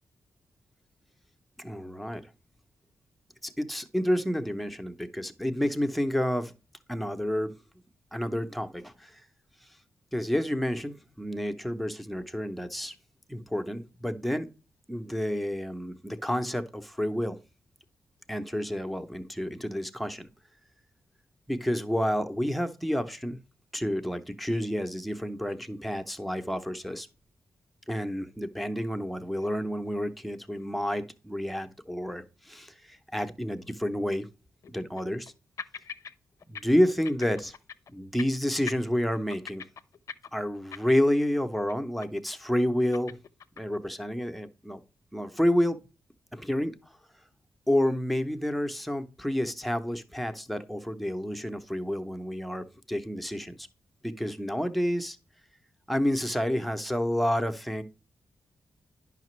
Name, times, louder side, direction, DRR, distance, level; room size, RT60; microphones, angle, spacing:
voice 1, 1.6-2.2 3.4-6.5 6.9-7.5 8.1-9.2 10.1-12.9 13.3-14.5 14.9-17.4 18.3-20.3 21.5-23.4 23.7-27.1 27.9-34.3 34.7-35.3 36.5-37.5 37.9-39.6 40.3-43.1 43.6-44.8 45.1-45.8 46.3-46.7 47.7-53.7 54.0-55.2 55.9-57.8, equal, ahead, 0.7 m, -29 dB
sound 1, 29.4-29.6 29.9-30.0 30.6-30.7 33.9-34.0 34.6-35.3 35.6-36.1 36.4-36.6 36.9-37.9 38.2-38.4 38.7-41.2 41.5-41.7 42.0-42.4 42.6-43.8, left 7 dB, 60° left, 0.5 m, -42 dB
10.0 x 5.8 x 3.1 m
wide cardioid pair, 105°, 6 cm